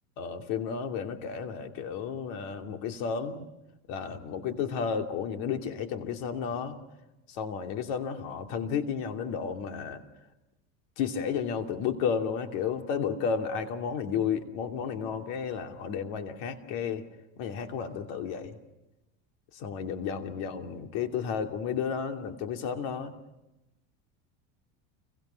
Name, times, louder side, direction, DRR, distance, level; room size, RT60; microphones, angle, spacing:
voice 1, 0.2-3.5 3.9-6.8 7.3-10.0 11.0-17.0 17.4-18.6 19.5-23.1, left 7 dB, 70° left, 5 dB, 2.9 m, -32 dB
29.5 x 23.5 x 5.8 m, 0.97 s
cardioid pair, 140°, 37 cm